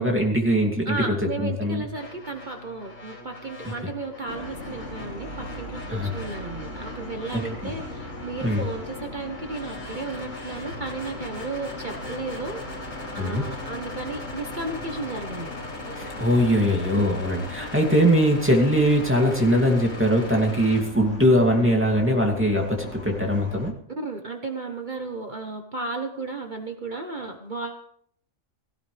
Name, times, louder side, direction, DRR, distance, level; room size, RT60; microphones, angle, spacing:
voice 1, 0.0-1.0 1.4-1.8 5.9-6.1 7.3-7.7 8.4-8.6 13.2-13.4 16.0-23.7, equal, 10° right, 0 dB, 2.6 m, -21 dB
voice 2, 0.8-12.6 13.1-15.5 16.9-17.0 20.3-20.6 24.0-27.8, right 3 dB, 40° right, 4 dB, 1.2 m, -34 dB
sound 1, 1.9-20.8, left 2 dB, 85° left, 3.9 m, -40 dB
sound 2, 4.3-23.7, left 1 dB, 65° left, 2.7 m, -39 dB
17.0 x 16.5 x 3.4 m, 0.63 s
omnidirectional pair, 1.3 m